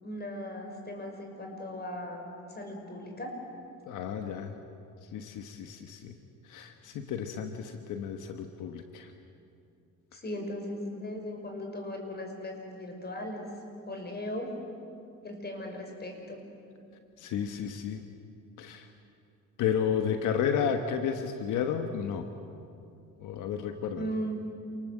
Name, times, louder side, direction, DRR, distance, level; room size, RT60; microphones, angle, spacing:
voice 1, 0.0-3.3 10.1-13.5 13.9-14.5 15.2-16.4 24.0-24.4, equal, 35° left, 3 dB, 5.6 m, -38 dB
voice 2, 3.9-4.5 5.1-6.2 6.4-9.1 17.2-18.0 18.6-18.9 19.6-22.3 23.2-24.0, left 7 dB, 85° left, 6 dB, 1.4 m, -32 dB
28.0 x 20.0 x 7.8 m, 2.6 s
cardioid pair, 90°, 30 cm